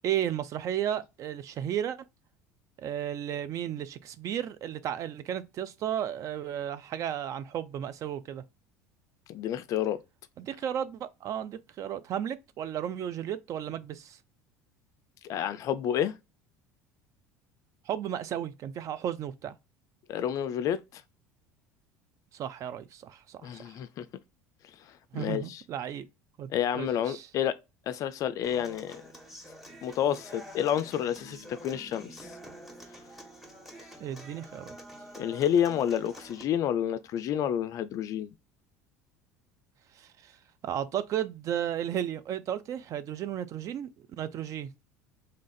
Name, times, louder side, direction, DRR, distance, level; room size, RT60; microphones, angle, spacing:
voice 1, 0.0-2.0 2.8-8.4 10.4-14.2 17.9-19.5 22.3-23.8 25.1-26.1 26.4-27.3 34.0-34.8 40.0-40.4 40.6-44.7, right 10 dB, 45° right, 0.5 m, -34 dB
voice 2, 9.3-10.0 15.2-16.2 20.1-21.0 23.4-24.1 24.8-25.6 26.5-27.6 27.9-29.0 29.8-32.4 35.1-38.3, left 10 dB, 50° left, 0.3 m, -29 dB
Human voice / Acoustic guitar, 28.4-36.4, equal, ahead, 1.3 m, -48 dB
3.2 x 2.5 x 3.9 m
hypercardioid pair, 70°, 8 cm